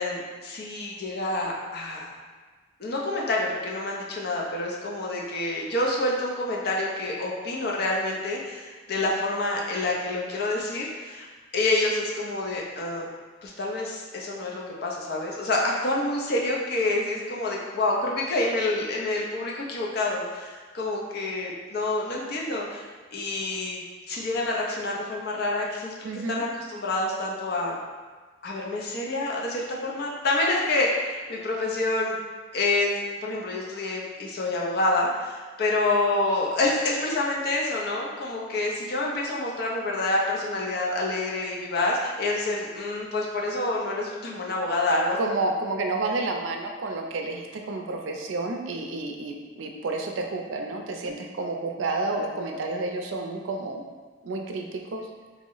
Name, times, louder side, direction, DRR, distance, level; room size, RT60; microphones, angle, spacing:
voice 1, 0.0-2.1 2.8-11.3 11.5-13.1 13.4-22.9 23.1-23.8 24.1-27.8 28.4-32.2 32.5-45.2, left 2 dB, 55° left, -2 dB, 0.5 m, -27 dB
voice 2, 26.0-26.4 45.2-53.8 54.2-55.0, right 2 dB, 85° right, 3 dB, 0.4 m, -30 dB
3.0 x 2.0 x 3.8 m, 1.4 s
head